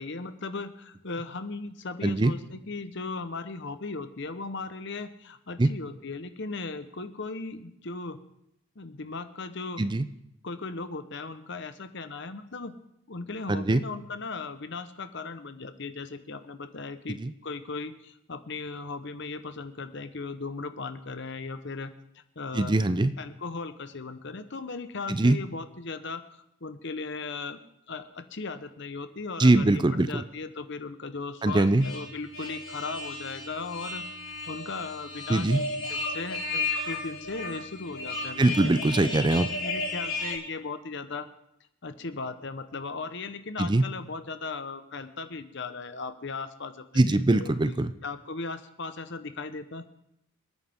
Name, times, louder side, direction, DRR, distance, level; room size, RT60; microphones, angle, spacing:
voice 1, 0.0-8.2 8.8-9.8 10.4-12.7 13.1-22.7 23.2-27.6 27.9-34.0 34.5-38.8 39.5-41.3 41.8-47.7 48.0-49.8, left 3 dB, 55° left, 10 dB, 1.0 m, -37 dB
voice 2, 2.0-2.3 5.6-5.7 9.8-10.1 13.5-13.8 17.2-17.3 22.5-23.1 25.1-25.4 29.4-30.2 31.4-31.9 35.3-35.6 38.4-39.5 43.6-43.8 47.0-47.9, right 2 dB, 20° right, 12 dB, 0.4 m, -22 dB
sound 1, 31.5-40.4, left 2 dB, 75° left, 6.7 m, -34 dB
27.5 x 9.2 x 3.6 m, 0.79 s
head